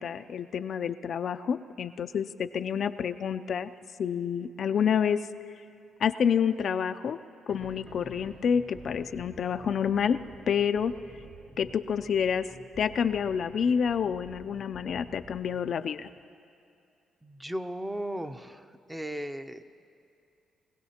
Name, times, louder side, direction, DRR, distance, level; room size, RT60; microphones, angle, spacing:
voice 1, 0.0-3.7 4.0-5.3 6.0-7.2 7.5-10.2 10.5-10.9 11.6-12.5 12.8-16.1, left 7 dB, 60° left, 9 dB, 0.4 m, -28 dB
sound 1, 7.5-15.6, right 2 dB, 50° right, 2.8 m, -50 dB
voice 2, 17.2-19.6, equal, 10° right, 9 dB, 0.6 m, -36 dB
23.5 x 17.0 x 2.9 m, 2.4 s
cardioid pair, 90°, 0 cm